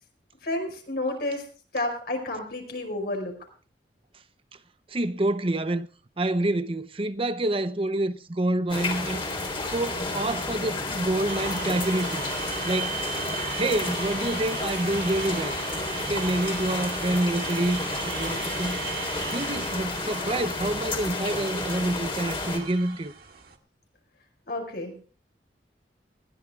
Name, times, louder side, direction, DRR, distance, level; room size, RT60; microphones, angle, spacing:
voice 1, 0.4-1.4 1.7-3.4 24.5-25.0, left 2 dB, 60° left, 5.3 m, -30 dB
voice 2, 4.9-5.9 6.2-9.2 9.6-12.2 12.6-13.0 13.6-15.6 15.9-18.8 19.3-23.1, right 1 dB, 30° right, 0.7 m, -27 dB
sound 1, 8.7-22.6, left 3 dB, 30° left, 3.6 m, -31 dB
sound 2, 11.3-23.6, right 7 dB, 55° right, 2.0 m, -37 dB
20.5 x 16.0 x 2.4 m
head